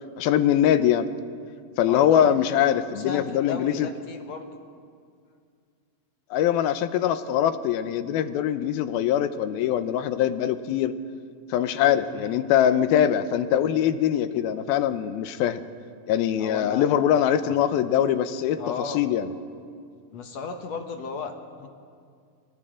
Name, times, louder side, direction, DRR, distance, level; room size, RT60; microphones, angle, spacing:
voice 1, 0.2-1.1 1.8-3.9 6.3-11.0 11.5-15.6 16.1-18.6 18.9-19.3, left 10 dB, 90° left, 11 dB, 2.7 m, -22 dB
voice 2, 1.9-4.5 12.1-12.4 16.4-16.9 17.3-17.6 18.6-19.0 20.1-21.7, left 5 dB, 65° left, 5 dB, 1.9 m, -35 dB
28.0 x 28.0 x 3.8 m, 2.2 s
omnidirectional pair, 4.2 m